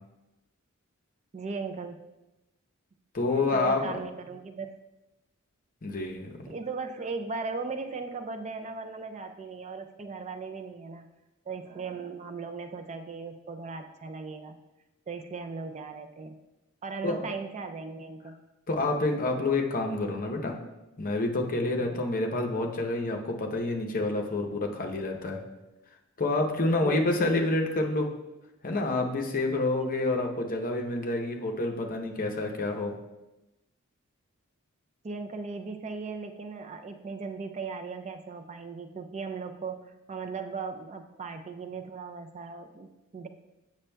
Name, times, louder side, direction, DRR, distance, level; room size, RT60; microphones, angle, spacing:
voice 1, 1.3-2.1 3.3-4.7 6.5-11.1 11.5-14.6 15.1-16.4 16.8-18.4 21.8-22.0 26.8-27.1 35.0-43.3, right 4 dB, 30° right, 7 dB, 0.3 m, -38 dB
voice 2, 3.1-4.0 5.8-6.4 17.0-17.2 18.7-20.5 21.0-25.4 26.2-28.1 28.6-32.9, left 2 dB, 40° left, 2 dB, 0.7 m, -28 dB
8.5 x 6.1 x 2.2 m, 0.99 s
head